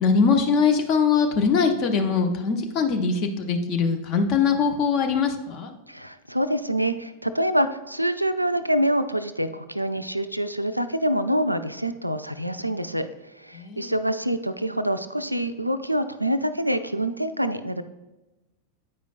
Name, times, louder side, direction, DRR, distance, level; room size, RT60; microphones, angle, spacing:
voice 1, 0.0-5.7 13.5-13.9, left 5 dB, 40° left, 5 dB, 0.7 m, -22 dB
voice 2, 5.9-13.1 13.3-17.8, right 1 dB, 90° right, 11 dB, 0.3 m, -26 dB
8.6 x 5.1 x 2.4 m, 1.0 s
figure-of-eight pair, 90°, 0 cm